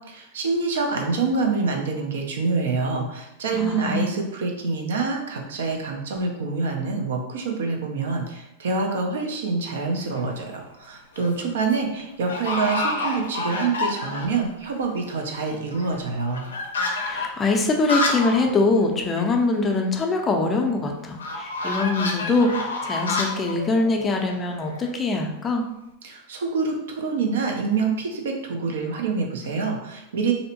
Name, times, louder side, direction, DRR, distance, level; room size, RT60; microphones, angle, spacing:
voice 1, 0.2-16.4 26.0-30.3, right 4 dB, 75° right, 2 dB, 0.5 m, -26 dB
voice 2, 3.5-4.1 17.0-25.6, left 3 dB, 25° left, 2 dB, 0.4 m, -23 dB
sound 1, 10.0-10.4 10.9-11.4 11.7-11.8 12.3-14.4 14.8-14.9 15.1-18.5 18.8-18.9 19.2-19.3 21.2-24.9, left 2 dB, 85° left, 0.4 m, -29 dB
2.6 x 2.0 x 2.7 m, 0.90 s
hypercardioid pair, 100°, 0 cm